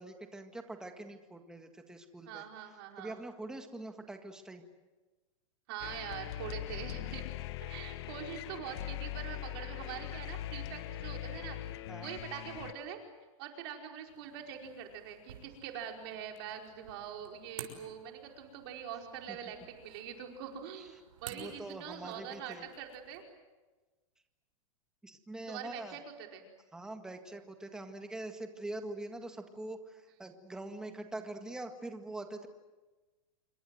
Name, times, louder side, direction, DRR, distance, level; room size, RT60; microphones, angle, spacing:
voice 1, 0.0-2.4 3.0-4.6 11.9-12.2 19.3-19.4 21.3-22.7 25.0-26.0 26.7-32.5, right 2 dB, 5° right, 6 dB, 1.8 m, -44 dB
voice 2, 2.3-3.2 5.7-7.3 7.6-11.6 12.0-13.0 13.4-20.9 21.2-23.2 25.5-26.0 26.3-26.5, right 8 dB, 45° right, 3 dB, 4.9 m, -44 dB
sound 1, 5.8-12.7, left 13 dB, 50° left, 1.3 m, -41 dB
sound 2, 14.1-23.3, right 8 dB, 85° right, 6.2 m, -53 dB
27.5 x 24.0 x 7.9 m, 1.2 s
supercardioid pair, 165°, 17 cm